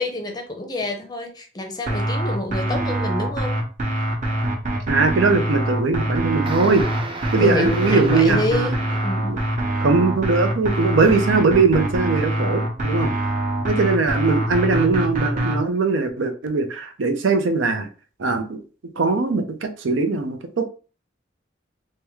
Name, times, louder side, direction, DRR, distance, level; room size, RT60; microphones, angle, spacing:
voice 1, 0.0-3.6 7.4-9.3, left 2 dB, 20° left, 3 dB, 0.6 m, -27 dB
sound 1, 1.9-15.6, right 1 dB, 45° right, 0.9 m, -24 dB
voice 2, 4.9-6.9 7.3-8.4 9.3-9.4 9.8-13.1 13.6-17.9 18.2-18.6 19.0-20.7, right 4 dB, 80° right, 7 dB, 0.5 m, -20 dB
sound 2, 6.4-9.5 10.7-11.5, right 3 dB, 25° right, 0.5 m, -34 dB
3.4 x 2.1 x 3.0 m, 0.37 s
head